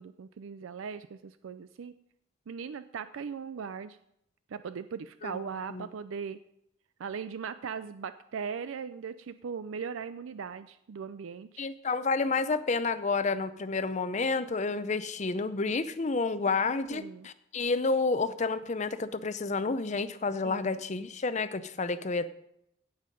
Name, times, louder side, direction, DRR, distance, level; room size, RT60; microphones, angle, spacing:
voice 1, 0.0-1.9 2.5-4.0 4.5-6.4 7.0-11.7 16.5-16.6 16.9-17.3 20.4-20.8, right 6 dB, 80° right, 12 dB, 0.4 m, -39 dB
voice 2, 11.6-22.3, left 4 dB, 35° left, 13 dB, 0.5 m, -30 dB
16.5 x 5.6 x 5.1 m, 0.77 s
head